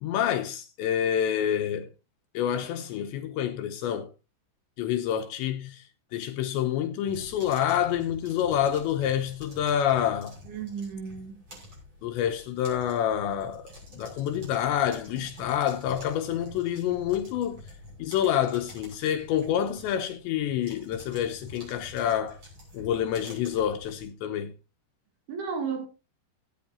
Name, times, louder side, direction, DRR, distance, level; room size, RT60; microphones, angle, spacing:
voice 1, 0.0-1.9 2.3-4.1 4.8-5.9 6.1-10.4 12.0-17.6 18.0-22.4 22.7-24.5, left 10 dB, 75° left, 3.0 m, -28 dB
sound 1, 7.1-24.0, left 1 dB, 30° right, 7.2 m, -48 dB
voice 2, 10.5-11.4 25.3-25.9, right 6 dB, 60° right, 4.1 m, -33 dB
17.0 x 9.3 x 2.9 m
omnidirectional pair, 5.4 m